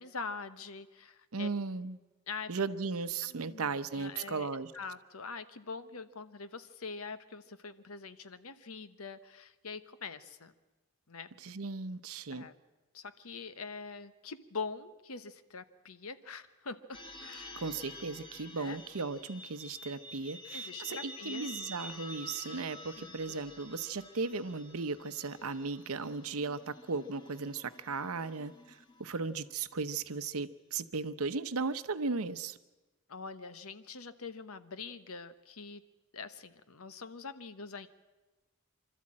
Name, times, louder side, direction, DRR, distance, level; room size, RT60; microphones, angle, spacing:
voice 1, 0.0-1.5 2.3-2.6 3.3-4.5 4.7-10.5 11.1-11.3 12.3-12.5 12.9-17.6 18.6-18.8 20.5-21.5 23.0-23.4 33.1-35.8 36.1-37.9, left 4 dB, 80° left, 12 dB, 1.0 m, -44 dB
voice 2, 1.3-2.0 2.5-4.7 11.4-12.5 17.6-32.6, right 4 dB, 80° right, 12 dB, 0.8 m, -36 dB
sound 1, 16.9-29.5, left 1 dB, 20° left, 1.3 m, -49 dB
25.5 x 13.0 x 8.6 m, 1.2 s
head